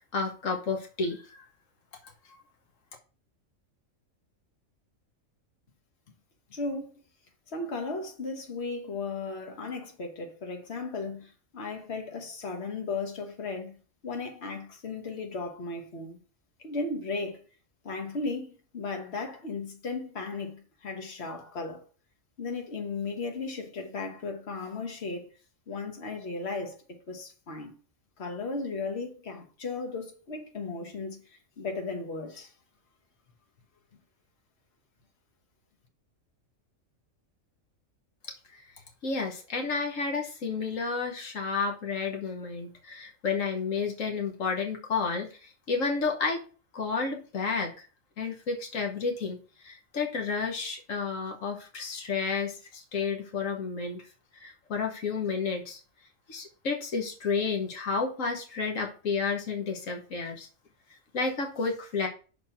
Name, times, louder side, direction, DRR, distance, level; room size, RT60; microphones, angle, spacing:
voice 1, 0.0-1.4 38.5-38.6 39.0-46.4 46.7-47.7 48.2-49.4 49.6-54.0 54.4-55.8 56.3-60.5 61.1-62.1, left 4 dB, 90° left, 1.5 m, -31 dB
voice 2, 6.5-7.0 7.5-13.7 14.0-16.2 16.6-17.4 17.8-18.5 18.7-21.8 22.4-25.3 25.7-27.7 28.2-32.5, left 3 dB, 55° left, 1.6 m, -36 dB
6.1 x 4.3 x 5.9 m
omnidirectional pair, 1.3 m